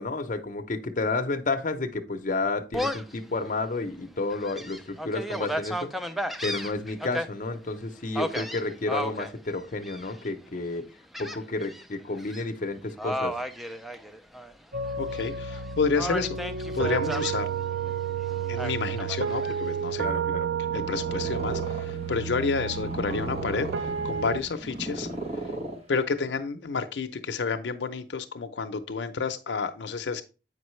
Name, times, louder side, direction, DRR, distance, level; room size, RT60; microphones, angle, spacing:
voice 1, 0.0-6.1 6.4-10.8 11.2-13.4 20.0-20.5, left 3 dB, 45° left, 0.7 m, -31 dB
Gull seagull, 2.7-3.2 3.7-3.8 4.3-7.3 8.1-9.3 9.8-10.3 11.1-11.8 12.2-12.4 13.0-14.5 14.9-15.6 16.0-17.3 18.6-19.6, equal, ahead, 0.4 m, -33 dB
sound 1, 14.7-24.4, right 7 dB, 70° right, 0.5 m, -31 dB
voice 2, 15.0-16.4 16.7-17.5 18.5-20.1 20.7-25.1 25.9-30.2, left 4 dB, 85° left, 0.6 m, -30 dB
Purr, 20.6-26.3, right 1 dB, 35° right, 1.0 m, -37 dB
7.9 x 5.2 x 3.1 m
head